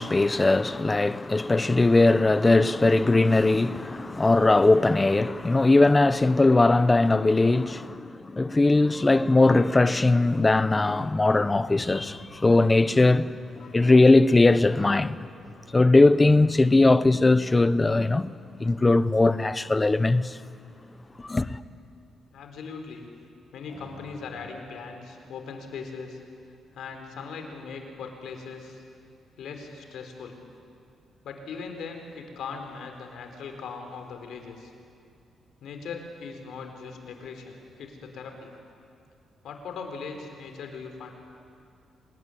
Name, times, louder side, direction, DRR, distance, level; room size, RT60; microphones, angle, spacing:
voice 1, 0.0-13.3 13.7-15.2 15.7-18.3 18.6-20.4 21.2-21.5, left 2 dB, 15° left, 0.7 m, -20 dB
sound 1, 8.1-9.0 9.4-19.8 20.1-20.3 20.9-21.0 23.7-24.5, left 2 dB, 40° left, 3.7 m, -48 dB
voice 2, 22.3-23.1 23.5-26.2 26.7-28.8 29.4-30.4 31.2-34.7 35.6-38.5 39.4-41.1, left 5 dB, 70° left, 4.2 m, -39 dB
27.5 x 19.5 x 9.9 m
cardioid pair, 160°, 0 cm